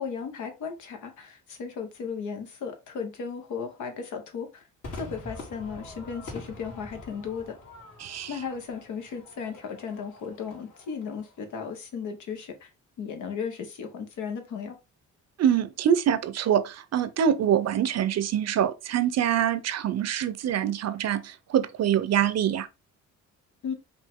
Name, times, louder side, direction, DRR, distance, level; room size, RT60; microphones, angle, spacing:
voice 1, 0.0-4.7 4.9-7.6 8.3-12.7 13.0-14.8 23.6-23.7, left 6 dB, 75° left, 1.2 m, -35 dB
Crowd / Fireworks, 4.8-11.4, left 2 dB, 60° left, 2.4 m, -44 dB
voice 2, 15.4-22.7, right 9 dB, 60° right, 0.7 m, -25 dB
5.2 x 2.6 x 3.6 m
cardioid pair, 90°, 30 cm